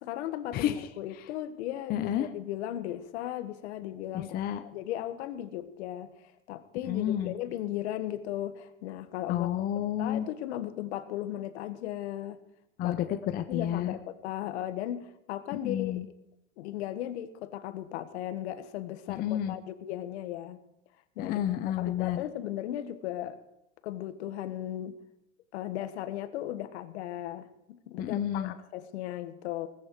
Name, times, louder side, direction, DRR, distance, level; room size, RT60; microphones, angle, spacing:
voice 1, 0.0-6.1 6.5-9.5 10.0-12.4 12.8-13.1 13.5-15.9 16.6-20.6 21.2-21.4 21.8-23.4 23.8-25.0 25.5-29.7, left 12 dB, 60° left, 10 dB, 1.7 m, -36 dB
voice 2, 0.5-0.9 1.9-2.3 4.3-4.6 6.8-7.3 9.3-10.3 12.8-14.0 15.5-16.1 19.1-19.6 21.2-22.2 28.0-28.5, left 11 dB, 25° left, 8 dB, 0.7 m, -30 dB
18.0 x 15.0 x 4.9 m, 0.83 s
supercardioid pair, 150°, 37 cm